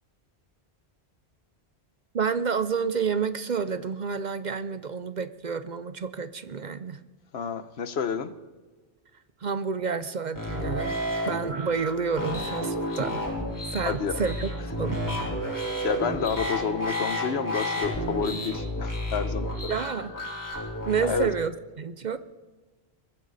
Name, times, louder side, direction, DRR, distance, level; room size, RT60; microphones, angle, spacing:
voice 1, 2.1-7.0 9.4-11.0 11.3-13.2 13.7-14.5 14.8-15.0 19.7-20.1 20.9-21.5 21.8-22.2, right 5 dB, 50° right, 13 dB, 0.7 m, -29 dB
voice 2, 7.3-8.3 13.8-14.3 15.8-19.7 21.0-21.3, left 6 dB, 75° left, 13 dB, 1.1 m, -29 dB
sound 1, 10.3-21.1, equal, 15° left, 4.1 m, -31 dB
22.0 x 14.5 x 4.1 m, 1.3 s
omnidirectional pair, 1.1 m